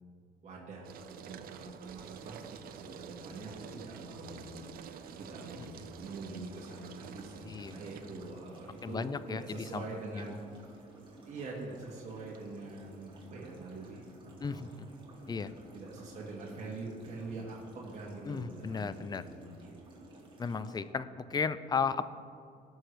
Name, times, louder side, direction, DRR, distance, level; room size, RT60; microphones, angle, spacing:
voice 1, 0.4-2.4 2.8-10.8 11.3-14.1 14.4-19.7, right 3 dB, 45° right, -4 dB, 1.7 m, -45 dB
sound 1, 0.8-18.3, right 8 dB, 60° right, 0.6 m, -51 dB
sound 2, 1.9-20.8, right 1 dB, 30° right, 2.3 m, -55 dB
voice 2, 7.4-7.8 8.8-9.8 10.1-10.2 14.4-14.7 15.3-15.5 18.3-19.2 20.4-22.0, left 5 dB, 25° left, 14 dB, 0.4 m, -34 dB
17.5 x 6.4 x 3.3 m, 2.4 s
cardioid pair, 110°, 17 cm